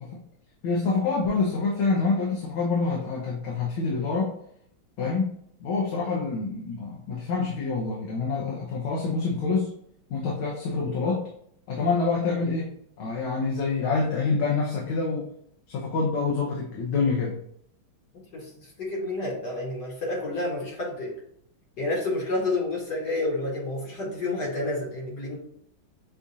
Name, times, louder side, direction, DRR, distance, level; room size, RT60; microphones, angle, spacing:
voice 1, 0.6-4.3 5.0-5.3 5.6-9.7 10.1-11.3 11.7-15.3 15.7-17.4, left 4 dB, 80° left, -3 dB, 1.7 m, -26 dB
voice 2, 18.3-21.1 21.8-25.4, left 2 dB, 60° left, -3 dB, 1.7 m, -29 dB
6.7 x 2.4 x 2.7 m, 0.68 s
omnidirectional pair, 2.2 m